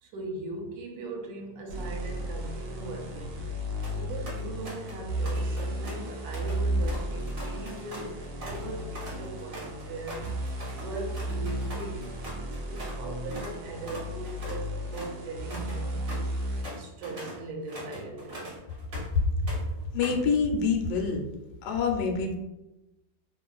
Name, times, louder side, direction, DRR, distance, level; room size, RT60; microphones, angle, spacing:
voice 1, 0.0-3.6 4.0-10.3 10.7-16.4 16.7-18.4, right 2 dB, 90° right, 1 dB, 1.3 m, -40 dB
sound 1, 1.7-16.6, equal, 70° right, 1.0 m, -34 dB
sound 2, 3.8-4.0 4.3-5.0 5.2-13.0 13.3-13.5 13.8-19.2 19.5-20.3, right 1 dB, 45° right, 0.7 m, -42 dB
voice 2, 19.9-21.2 21.6-22.4, left 5 dB, 80° left, 2 dB, 1.2 m, -26 dB
2.9 x 2.4 x 2.3 m, 0.97 s
omnidirectional pair, 1.9 m